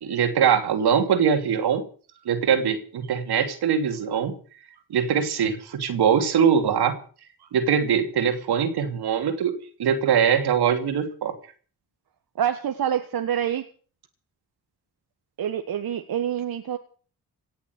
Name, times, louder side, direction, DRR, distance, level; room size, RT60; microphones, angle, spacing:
voice 1, 0.0-1.8 2.2-4.3 4.9-7.0 7.5-9.5 9.8-11.3, right 7 dB, 85° right, 7 dB, 2.9 m, -22 dB
voice 2, 12.4-13.6 15.4-16.8, right 9 dB, 70° right, 8 dB, 1.5 m, -26 dB
18.0 x 7.4 x 9.4 m, 0.42 s
cardioid pair, 70°, 38 cm